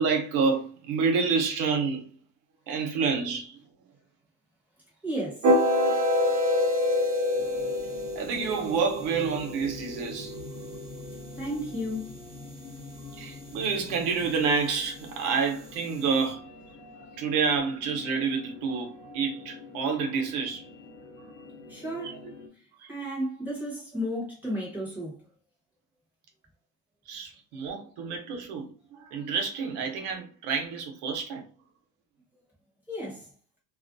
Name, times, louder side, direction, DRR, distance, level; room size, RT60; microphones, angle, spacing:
voice 1, 0.0-2.0 2.7-3.5 8.2-10.4 13.2-16.5 17.2-20.6 22.8-22.9 27.1-31.5, right 5 dB, 90° right, 0.8 m, -28 dB
voice 2, 5.0-5.4 11.3-12.1 21.7-22.2 22.9-25.2 27.6-27.7 32.9-33.3, equal, 5° right, 1.1 m, -33 dB
sound 1, 5.4-11.5, left 1 dB, 55° right, 0.7 m, -27 dB
sound 2, 7.3-22.5, left 2 dB, 90° left, 0.8 m, -46 dB
2.4 x 2.2 x 2.5 m
cardioid pair, 170°, 39 cm